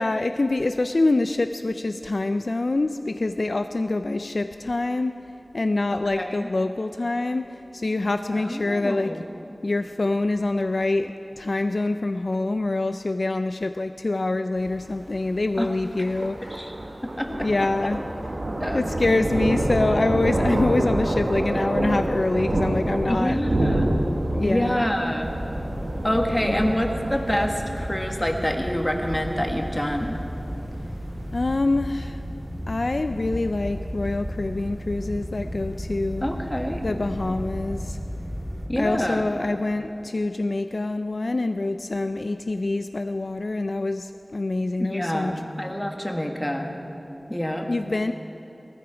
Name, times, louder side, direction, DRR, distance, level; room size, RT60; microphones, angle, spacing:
voice 1, 0.0-9.3 9.6-16.7 17.3-18.0 18.7-23.4 24.3-24.8 26.4-26.8 31.3-32.2 32.7-36.3 36.8-38.0 38.8-45.8 47.7-48.1, left 2 dB, 70° left, 9 dB, 0.3 m, -25 dB
voice 2, 5.9-6.5 8.4-9.2 15.6-15.7 16.5-16.7 17.0-17.5 18.6-18.8 23.1-23.9 24.4-25.3 26.0-30.2 36.2-36.8 38.7-39.2 44.8-46.7 47.3-47.7, equal, 15° left, 3 dB, 1.4 m, -27 dB
Thunder, 14.6-31.5, right 1 dB, 80° right, 1.3 m, -28 dB
sound 1, 25.2-38.7, equal, 30° right, 4.3 m, -34 dB
18.5 x 14.0 x 4.9 m, 3.0 s
wide cardioid pair, 60°, 0 cm